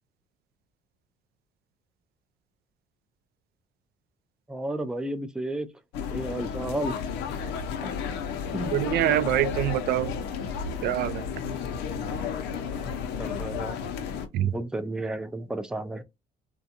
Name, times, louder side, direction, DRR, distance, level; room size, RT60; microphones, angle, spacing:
voice 1, 4.5-5.7 6.1-6.9 7.8-7.9 8.5-8.8 9.1-9.2 11.9-12.0 12.7-13.8 14.4-16.0, right 2 dB, 5° right, 0.4 m, -33 dB
sound 1, 5.9-14.3, left 6 dB, 80° left, 0.6 m, -32 dB
voice 2, 8.7-10.1 10.8-11.2 14.3-14.5, right 13 dB, 70° right, 0.4 m, -25 dB
3.5 x 2.3 x 2.7 m
cardioid pair, 110°, 17 cm